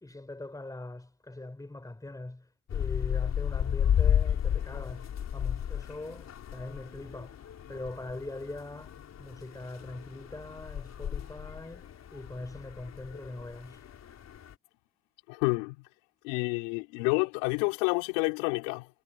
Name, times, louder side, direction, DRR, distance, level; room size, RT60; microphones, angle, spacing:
voice 1, 0.0-2.4 2.7-5.1 5.3-7.3 7.7-13.8, left 2 dB, 10° left, 4.1 m, -42 dB
sound 1, 2.7-14.5, left 9 dB, 45° left, 4.4 m, -33 dB
voice 2, 15.3-15.8 16.2-18.9, left 31 dB, 80° left, 4.3 m, -29 dB
supercardioid pair, 85°, 37 cm